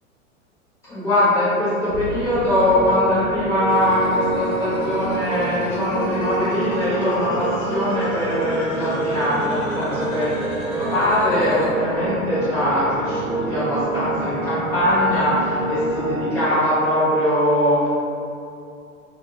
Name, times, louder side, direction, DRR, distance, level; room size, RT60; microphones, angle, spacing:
voice 1, 0.9-10.3 10.7-17.9, left 1 dB, 10° left, -15 dB, 0.3 m, -21 dB
sound 1, 1.9-16.3, right 3 dB, 45° right, 0.9 m, -28 dB
sound 2, 3.7-11.7, equal, 40° left, 0.9 m, -33 dB
3.0 x 2.1 x 3.4 m, 2.6 s
figure-of-eight pair, 100°, 40 cm